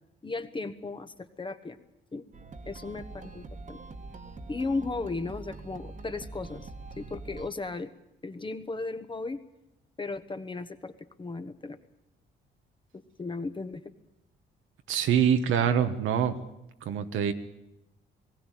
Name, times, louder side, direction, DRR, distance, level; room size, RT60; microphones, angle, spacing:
voice 1, 0.2-1.8 2.1-2.2 2.7-3.8 4.5-6.7 7.0-7.9 8.2-9.4 10.0-10.9 11.2-11.8 12.9-13.8, left 3 dB, 25° left, 10 dB, 1.3 m, -35 dB
sound 1, 2.3-7.5, right 3 dB, 40° right, 1.6 m, -44 dB
voice 2, 14.9-16.3 16.8-17.3, right 8 dB, 85° right, 8 dB, 1.4 m, -25 dB
19.5 x 16.5 x 9.3 m, 0.88 s
cardioid pair, 90°, 20 cm